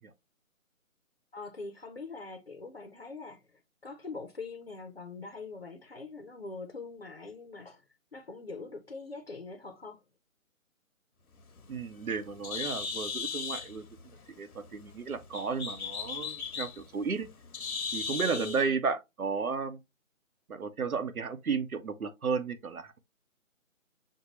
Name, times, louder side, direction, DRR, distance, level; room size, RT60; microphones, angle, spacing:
voice 1, 1.3-3.4 3.8-7.8 8.1-10.0 18.2-18.8, left 3 dB, 45° left, 0.6 m, -43 dB
Bird, 11.4-18.7, left 5 dB, 85° left, 0.9 m, -38 dB
voice 2, 11.7-13.8 14.3-17.3 17.9-19.8 20.5-23.0, right 5 dB, 80° right, 1.0 m, -33 dB
6.5 x 2.2 x 3.0 m
figure-of-eight pair, 175°, 42 cm